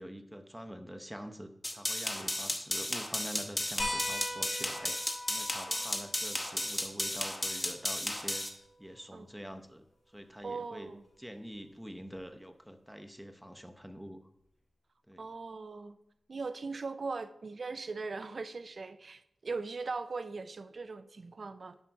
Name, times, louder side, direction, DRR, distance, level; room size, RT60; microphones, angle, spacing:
voice 1, 0.0-4.9 5.3-8.4 8.8-9.8 10.1-10.9 11.2-14.2 15.1-15.2, equal, 5° right, 7 dB, 0.9 m, -45 dB
sound 1, 1.6-8.5, left 1 dB, 15° left, 1.3 m, -34 dB
sound 2, 3.8-8.9 10.4-10.5 12.2-12.3, left 1 dB, 80° left, 4.1 m, -42 dB
voice 2, 10.4-11.0 15.2-16.0 16.3-21.8, right 4 dB, 60° right, 12 dB, 0.5 m, -40 dB
11.0 x 5.5 x 4.7 m, 0.79 s
wide cardioid pair, 75°, 0 cm